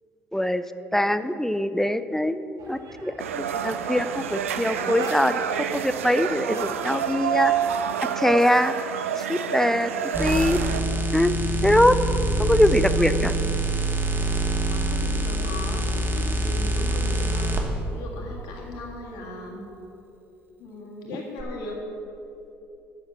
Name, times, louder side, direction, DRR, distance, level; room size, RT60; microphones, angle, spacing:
voice 1, 0.3-0.6 0.9-5.3 5.7-7.5 8.2-8.7 9.2-9.9 10.2-10.6 11.1-11.3 11.6-11.9 12.4-13.3, left 1 dB, 5° left, 12 dB, 0.4 m, -22 dB
sound 1, 2.6-7.7, right 3 dB, 60° right, 1.3 m, -41 dB
sound 2, 3.2-10.8, right 8 dB, 90° right, 0.4 m, -28 dB
sound 3, 10.1-17.6 21.4-21.5, right 1 dB, 30° right, 1.4 m, -25 dB
voice 2, 14.7-17.6 17.9-19.6 20.6-21.8, left 2 dB, 70° left, -1 dB, 1.8 m, -37 dB
7.8 x 6.4 x 7.1 m, 2.9 s
hypercardioid pair, 55°, 7 cm